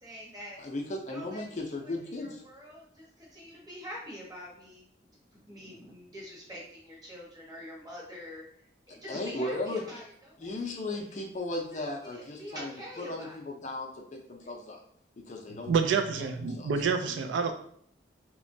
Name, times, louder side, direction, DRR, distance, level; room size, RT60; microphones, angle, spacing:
voice 1, 0.0-0.6 1.1-4.9 5.3-8.4 8.9-10.5 10.9-11.2 11.7-11.8 12.1-13.4 14.4-14.5, equal, 20° right, -4 dB, 0.8 m, -45 dB
voice 2, 0.6-2.4 9.1-9.8 10.4-14.8 15.3-15.7 16.2-16.7, left 2 dB, 40° left, 1 dB, 0.4 m, -36 dB
voice 3, 15.7-17.5, right 5 dB, 90° right, 6 dB, 0.3 m, -27 dB
2.9 x 2.1 x 2.6 m, 0.64 s
head